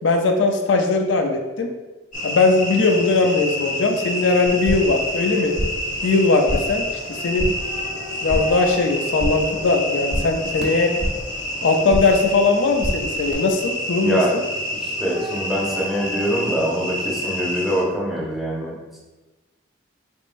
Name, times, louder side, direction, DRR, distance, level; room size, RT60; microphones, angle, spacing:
voice 1, 0.0-1.7 2.2-5.6 6.0-6.9 7.2-7.5 8.2-10.9 11.6-14.2, left 3 dB, 80° left, 4 dB, 0.4 m, -19 dB
sound 1, 2.1-17.8, left 1 dB, 40° left, 0.8 m, -29 dB
sound 2, 4.5-5.0 5.3-5.9 6.2-6.8 7.1-7.7 8.0-8.7 8.9-9.6 9.8-11.3 11.6-12.3 12.5-13.3, equal, 65° right, 0.8 m, -28 dB
voice 2, 14.0-14.4 14.8-18.7, equal, ahead, -5 dB, 0.7 m, -24 dB
4.0 x 3.5 x 2.5 m, 1.2 s
head